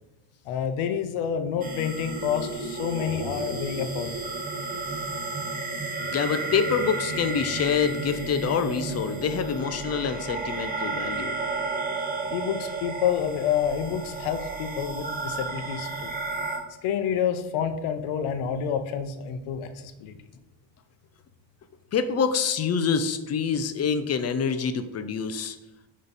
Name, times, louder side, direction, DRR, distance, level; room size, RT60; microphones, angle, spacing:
voice 1, 0.4-4.2 12.3-16.1 16.8-20.2, left 8 dB, 80° left, 8 dB, 0.9 m, -28 dB
sound 1, 1.6-16.6, right 3 dB, 15° right, 1.0 m, -32 dB
voice 2, 6.1-11.3 21.9-25.6, left 6 dB, 35° left, 10 dB, 0.5 m, -26 dB
8.9 x 3.2 x 4.1 m, 1.0 s
cardioid pair, 120°, 48 cm